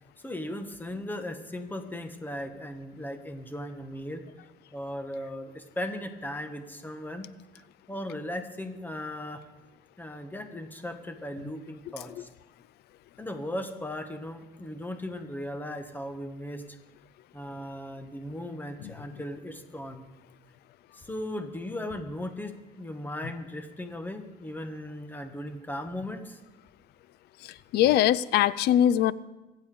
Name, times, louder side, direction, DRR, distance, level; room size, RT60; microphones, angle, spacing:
voice 1, 0.2-4.3 4.7-7.3 7.5-9.5 10.0-12.3 13.2-16.8 17.3-20.1 20.9-26.4, left 1 dB, 10° left, 7 dB, 1.6 m, -37 dB
voice 2, 27.4-29.1, left 11 dB, 75° left, 20 dB, 0.5 m, -22 dB
24.0 x 8.3 x 5.2 m, 1.1 s
cardioid pair, 110°, 17 cm